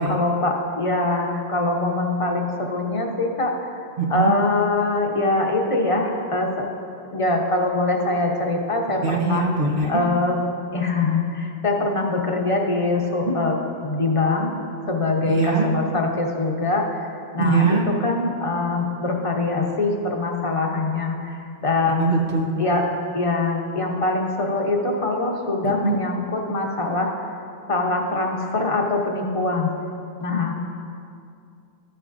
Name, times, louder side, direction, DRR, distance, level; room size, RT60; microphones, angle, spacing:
voice 1, 0.0-3.8 4.1-6.6 7.1-9.5 9.9-10.4 10.7-13.5 13.8-14.5 14.9-22.1 22.6-22.9 23.1-27.1 27.7-29.7 30.2-30.5, left 2 dB, 35° left, 1 dB, 0.9 m, -23 dB
voice 2, 4.0-4.3 9.0-10.0 15.3-15.7 17.4-17.8 22.0-22.4 25.6-25.7, right 5 dB, 60° right, 0 dB, 0.9 m, -21 dB
14.0 x 6.7 x 2.6 m, 2.5 s
omnidirectional pair, 1.0 m